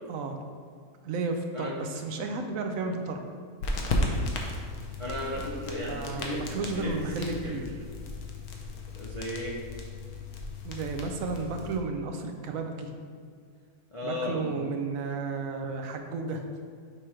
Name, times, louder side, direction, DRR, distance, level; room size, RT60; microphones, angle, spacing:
voice 1, 0.1-0.4 1.0-3.2 5.3-5.4 5.9-7.7 10.6-12.9 14.0-16.4, right 4 dB, 70° right, 4 dB, 0.9 m, -33 dB
sound 1, 3.6-11.8, left 2 dB, 75° left, 1.2 m, -35 dB
voice 2, 3.9-4.2 5.0-6.4 6.7-7.6 9.0-9.6 13.9-14.4, left 1 dB, 45° left, -5 dB, 0.4 m, -35 dB
6.6 x 2.9 x 4.8 m, 2.1 s
omnidirectional pair, 1.6 m